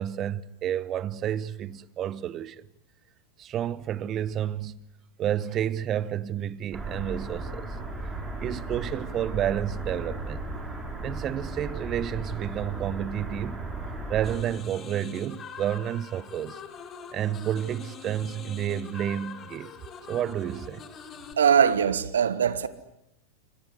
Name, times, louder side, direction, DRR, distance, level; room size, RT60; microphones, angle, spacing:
voice 1, 0.0-2.6 3.4-4.9 5.2-7.7 8.4-10.4 11.0-13.6 14.1-16.6 17.1-19.7 20.1-20.9, right 10 dB, 30° right, 1.2 m, -30 dB
sound 1, 6.7-14.4, right 2 dB, 10° right, 6.4 m, -35 dB
sound 2, 14.2-21.3, left 6 dB, 25° left, 4.5 m, -44 dB
voice 2, 21.4-22.7, right 8 dB, 65° right, 1.4 m, -21 dB
28.5 x 25.5 x 7.9 m
figure-of-eight pair, 90°, 0 cm